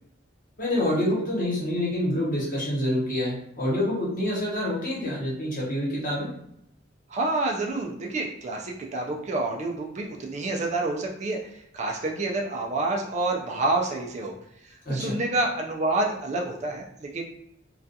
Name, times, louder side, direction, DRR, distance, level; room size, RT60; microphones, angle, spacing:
voice 1, 0.6-6.3 14.8-15.2, left 1 dB, 45° left, -6 dB, 1.0 m, -27 dB
voice 2, 7.1-14.3 14.9-17.2, right 2 dB, 35° right, 0 dB, 0.3 m, -28 dB
2.3 x 2.3 x 2.6 m, 0.75 s
head